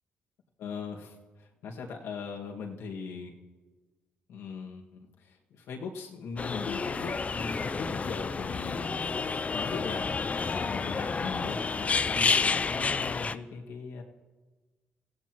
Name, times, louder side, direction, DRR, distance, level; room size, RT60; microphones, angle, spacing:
voice 1, 0.6-3.3 4.3-14.0, left 5 dB, 90° left, 0 dB, 1.9 m, -40 dB
sound 1, 6.4-13.3, left 4 dB, 30° left, 0.5 m, -30 dB
27.5 x 16.0 x 3.1 m, 1.3 s
cardioid pair, 90°, 4 cm